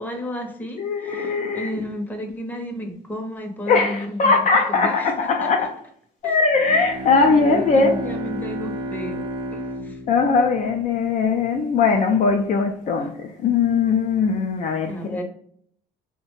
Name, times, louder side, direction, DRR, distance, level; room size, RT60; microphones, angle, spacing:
voice 1, 0.0-5.1 5.4-5.7 6.2-6.4 7.3-9.3 9.5-10.0 14.9-15.2, equal, 10° left, 0.7 m, -32 dB
voice 2, 0.8-1.8 3.7-5.7 6.2-8.0 10.1-15.2, left 4 dB, 50° left, 0.4 m, -20 dB
Bowed string instrument, 6.5-11.4, equal, 30° right, 0.5 m, -32 dB
2.7 x 2.1 x 2.9 m
cardioid pair, 110°, 17 cm